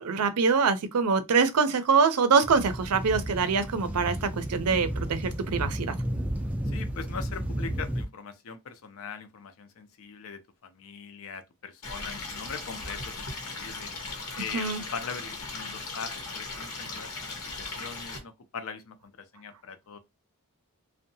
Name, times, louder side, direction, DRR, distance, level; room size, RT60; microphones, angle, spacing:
voice 1, 0.0-5.9 14.5-14.8, right 5 dB, 80° right, 0.5 m, -24 dB
sound 1, 2.4-8.1, equal, 5° right, 0.3 m, -33 dB
voice 2, 6.7-13.9 14.4-17.1 17.4-20.0, left 6 dB, 65° left, 0.5 m, -41 dB
Stream, 11.8-18.2, left 3 dB, 85° left, 0.9 m, -38 dB
2.7 x 2.1 x 2.6 m
head